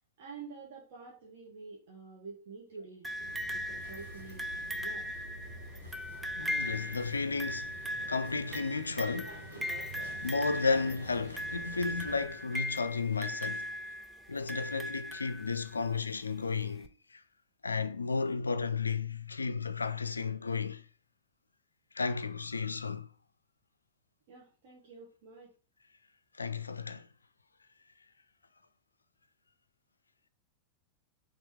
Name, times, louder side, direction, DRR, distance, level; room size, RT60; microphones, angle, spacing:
voice 1, 0.2-3.1 3.5-5.1 24.3-25.5, right 4 dB, 55° right, 1.2 m, -48 dB
sound 1, 3.0-15.9 16.8-16.9, left 1 dB, 5° right, 0.5 m, -39 dB
sound 2, 3.2-12.2, right 1 dB, 90° right, 1.4 m, -47 dB
voice 2, 6.4-7.7 8.1-9.4 10.2-13.7 14.3-16.9 17.6-20.8 22.0-23.1 26.4-27.1, left 4 dB, 75° left, 0.3 m, -33 dB
4.2 x 3.0 x 3.4 m
figure-of-eight pair, 90°, 0 cm